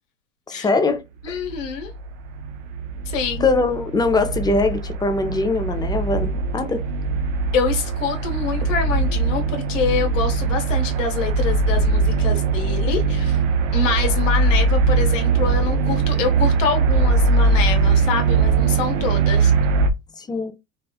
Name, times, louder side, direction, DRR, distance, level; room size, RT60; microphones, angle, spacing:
voice 1, 0.5-1.4 3.4-6.8 20.2-20.5, left 3 dB, 10° left, 0.4 m, -22 dB
voice 2, 1.2-1.9 3.1-3.5 7.5-13.4 13.7-19.5, left 6 dB, 85° left, 1.2 m, -26 dB
sound 1, 1.3-19.9, right 4 dB, 85° right, 0.6 m, -21 dB
4.2 x 2.3 x 2.3 m
supercardioid pair, 115°, 37 cm